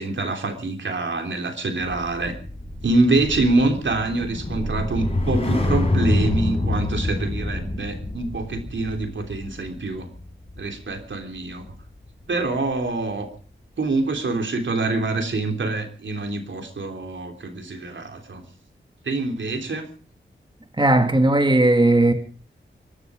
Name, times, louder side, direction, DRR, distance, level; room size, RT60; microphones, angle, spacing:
voice 1, 0.0-2.3 2.8-10.1 10.6-11.6 12.3-13.3 13.8-18.4 19.0-19.9, right 2 dB, 70° right, 3.4 m, -25 dB
sound 1, 1.9-12.2 12.6-12.9, left 2 dB, 30° left, 5.3 m, -27 dB
voice 2, 20.7-22.1, right 2 dB, 25° right, 2.2 m, -17 dB
23.5 x 12.5 x 5.0 m
wide cardioid pair, 70°, 20 cm